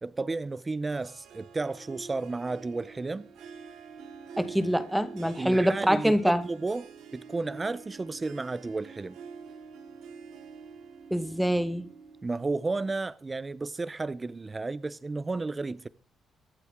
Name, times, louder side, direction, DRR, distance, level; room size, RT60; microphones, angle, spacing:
voice 1, 0.0-3.3 5.4-9.2 12.2-15.9, right 3 dB, 25° right, 0.6 m, -33 dB
Harp, 0.9-13.1, right 5 dB, 80° right, 2.4 m, -47 dB
voice 2, 4.4-6.4 11.1-11.9, equal, 5° right, 1.4 m, -25 dB
23.5 x 8.1 x 3.7 m
cardioid pair, 90°, 0 cm